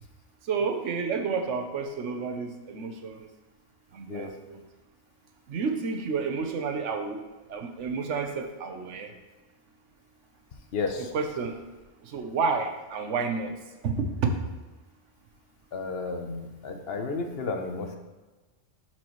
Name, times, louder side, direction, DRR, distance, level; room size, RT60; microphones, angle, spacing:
voice 1, 0.4-3.3 3.9-4.6 5.5-7.2 7.5-9.1 11.0-11.6 12.0-13.5 13.8-14.3, right 5 dB, 90° right, 5 dB, 1.2 m, -30 dB
voice 2, 10.7-11.1 15.7-18.0, left 4 dB, 60° left, 5 dB, 1.0 m, -32 dB
11.5 x 4.5 x 3.0 m, 1.2 s
omnidirectional pair, 1.2 m